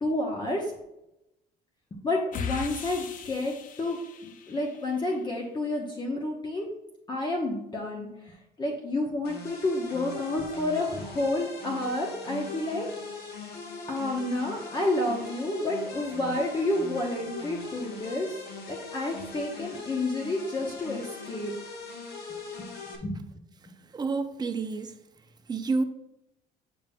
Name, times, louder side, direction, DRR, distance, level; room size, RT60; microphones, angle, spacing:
voice 1, 0.0-0.7 2.0-6.7 7.1-12.9 13.9-18.4 18.7-21.5 23.0-23.4, left 2 dB, 25° left, 0.9 m, -30 dB
sound 1, 2.3-5.0, left 6 dB, 50° left, 0.6 m, -38 dB
sound 2, 9.2-23.0, left 4 dB, 65° left, 1.2 m, -40 dB
voice 2, 23.9-25.0 25.5-25.8, right 4 dB, 25° right, 0.6 m, -29 dB
8.5 x 5.2 x 2.3 m
cardioid pair, 110°, 17 cm